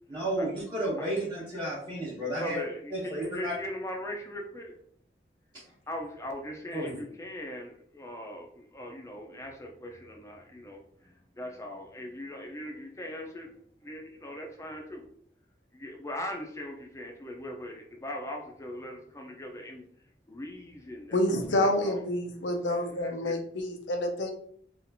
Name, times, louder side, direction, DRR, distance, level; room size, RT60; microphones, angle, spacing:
voice 1, 0.1-2.6 2.9-3.5 6.7-6.9, right 1 dB, 25° right, -8 dB, 0.9 m, -32 dB
voice 2, 2.4-4.8 5.9-15.0 15.7-19.9 20.3-22.1 22.7-23.4, left 1 dB, 15° left, 1 dB, 0.5 m, -40 dB
voice 3, 21.1-24.3, left 1 dB, 90° left, 4 dB, 0.6 m, -28 dB
4.2 x 2.5 x 2.7 m, 0.63 s
head